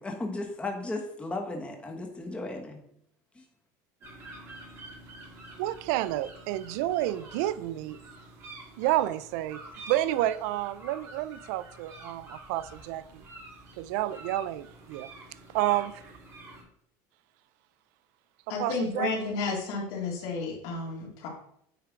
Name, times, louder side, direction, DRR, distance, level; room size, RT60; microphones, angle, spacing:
voice 1, 0.0-2.8 3.4-3.5, left 2 dB, 10° left, 1.1 m, -35 dB
sound 1, 4.0-16.6, right 2 dB, 35° right, 2.3 m, -48 dB
voice 2, 5.6-8.0 8.8-9.6 9.9-13.2 13.8-15.1 15.5-16.0 18.6-19.1, right 14 dB, 80° right, 0.3 m, -30 dB
voice 3, 18.5-21.3, left 4 dB, 70° left, 2.3 m, -32 dB
8.8 x 3.2 x 4.6 m
supercardioid pair, 130°, 9 cm